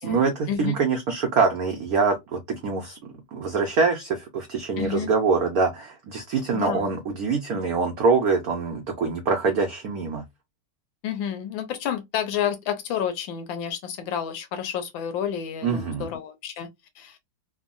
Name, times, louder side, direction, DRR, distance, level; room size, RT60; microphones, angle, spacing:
voice 1, 0.0-10.2 15.6-16.1, right 4 dB, 85° right, 0.8 m, -24 dB
voice 2, 4.8-5.1 6.5-6.9 11.0-16.7 17.0-17.2, left 8 dB, 75° left, 1.2 m, -30 dB
3.6 x 2.0 x 2.4 m
omnidirectional pair, 2.4 m